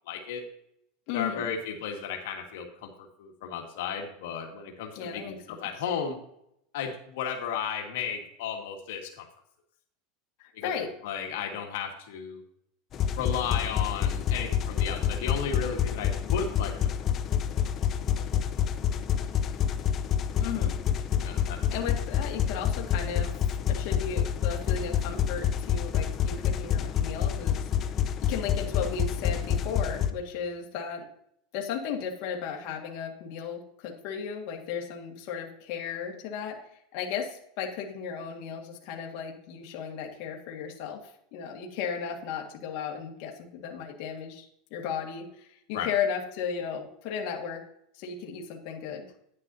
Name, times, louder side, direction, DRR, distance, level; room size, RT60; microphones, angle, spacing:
voice 1, 0.1-0.4 1.1-2.9 3.2-6.2 6.7-9.3 10.6-12.4 13.1-17.1 18.1-18.2 21.2-21.6 45.7-45.9, left 7 dB, 75° left, 1 dB, 1.8 m, -34 dB
voice 2, 1.1-1.5 4.9-5.7 10.4-10.9 20.4-20.7 21.3-23.3 23.7-27.7 28.2-31.1 31.5-44.5 44.7-47.6 47.9-49.1, left 7 dB, 55° left, 0 dB, 1.9 m, -35 dB
sound 1, 12.9-30.1, left 9 dB, 30° left, 0.7 m, -28 dB
10.5 x 9.7 x 2.8 m, 0.72 s
supercardioid pair, 145°, 0 cm